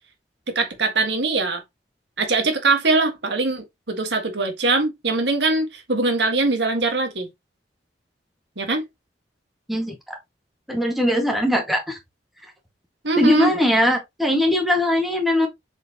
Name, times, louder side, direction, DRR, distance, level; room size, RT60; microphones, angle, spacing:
voice 1, 0.5-1.6 2.2-7.3 8.6-8.8 13.0-13.5, right 3 dB, 70° right, 1.8 m, -22 dB
voice 2, 9.7-10.2 10.7-12.0 13.2-15.5, left 1 dB, ahead, 1.9 m, -20 dB
7.4 x 5.0 x 3.0 m
head